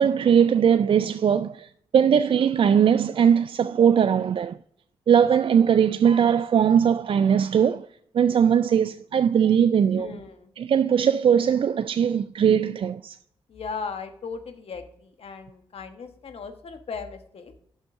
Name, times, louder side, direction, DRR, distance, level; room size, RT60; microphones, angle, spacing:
voice 1, 0.0-4.6 5.1-7.9 8.1-10.1 10.6-13.2, right 8 dB, 55° right, 0.4 m, -20 dB
voice 2, 9.9-10.5 13.5-17.5, left 5 dB, 65° left, 1.2 m, -37 dB
9.0 x 6.4 x 3.6 m
supercardioid pair, 40°, 11 cm